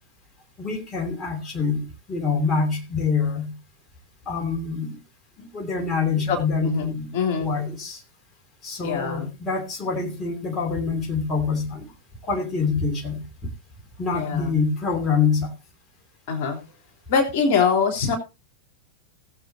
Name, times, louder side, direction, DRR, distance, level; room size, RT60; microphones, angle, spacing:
voice 1, 0.6-3.5 4.3-5.0 5.4-7.1 7.4-8.0 8.6-11.9 12.2-13.2 14.0-15.5, left 5 dB, 25° left, 2.8 m, -25 dB
voice 2, 6.3-7.6 8.8-9.3 14.1-14.5 16.3-16.6 17.1-18.2, left 5 dB, 50° left, 3.4 m, -24 dB
19.5 x 7.5 x 2.8 m
figure-of-eight pair, 90°, 0 cm